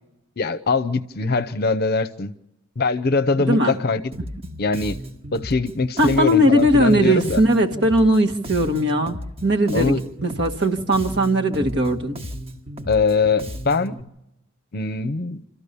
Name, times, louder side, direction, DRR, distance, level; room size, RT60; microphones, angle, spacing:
voice 1, 0.4-2.3 2.8-4.0 4.6-5.0 5.3-7.4 9.7-10.0 12.9-14.0 14.7-15.4, left 4 dB, 45° left, 0.8 m, -22 dB
voice 2, 3.4-3.7 6.0-10.0 10.2-12.2, equal, 55° right, 1.7 m, -19 dB
Bass guitar, 4.1-14.0, equal, 25° right, 1.5 m, -35 dB
28.0 x 14.0 x 6.9 m
head